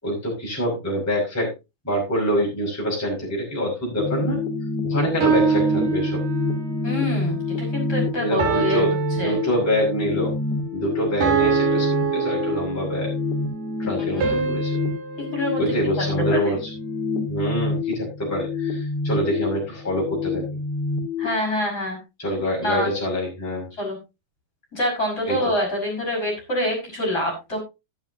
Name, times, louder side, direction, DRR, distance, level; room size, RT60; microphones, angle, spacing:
voice 1, 0.0-1.5 1.8-4.4 4.8-6.2 8.2-10.3 10.7-13.1 13.8-14.8 15.6-16.7 17.3-20.4 22.2-23.7 25.2-25.5, equal, 5° left, -3 dB, 4.9 m, -25 dB
sound 1, 4.0-21.3, left 3 dB, 75° left, 4.2 m, -27 dB
sound 2, 5.2-6.8 8.4-10.0 11.2-13.1 14.2-16.5, right 6 dB, 60° right, 4.6 m, -25 dB
voice 2, 6.8-9.4 14.1-14.6 15.3-15.6 16.3-16.5 21.2-22.0 22.6-22.9 23.8-24.0 24.7-27.6, left 1 dB, 20° left, 0 dB, 5.7 m, -26 dB
14.5 x 10.5 x 2.8 m, 0.26 s
omnidirectional pair, 5.2 m